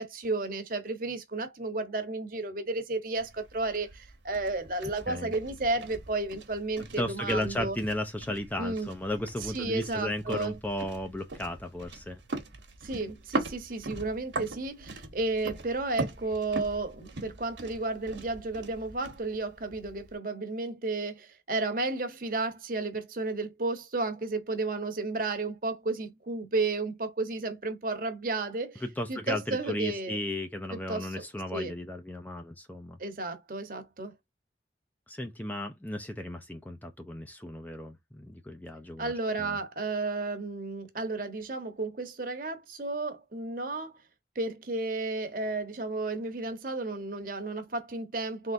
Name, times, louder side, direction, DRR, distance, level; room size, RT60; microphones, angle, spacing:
voice 1, 0.0-7.8 8.6-8.9 9.5-10.6 12.8-28.8 29.1-30.2 30.7-31.1 31.5-31.7 33.0-34.1 39.0-43.9 44.3-48.5, right 3 dB, 50° right, 1.0 m, -32 dB
sound 1, 3.2-20.2, right 2 dB, 80° right, 1.2 m, -41 dB
voice 2, 7.0-12.2 28.8-33.0 35.1-39.1 39.4-39.6, left 1 dB, 10° left, 0.5 m, -35 dB
3.7 x 3.3 x 2.6 m
head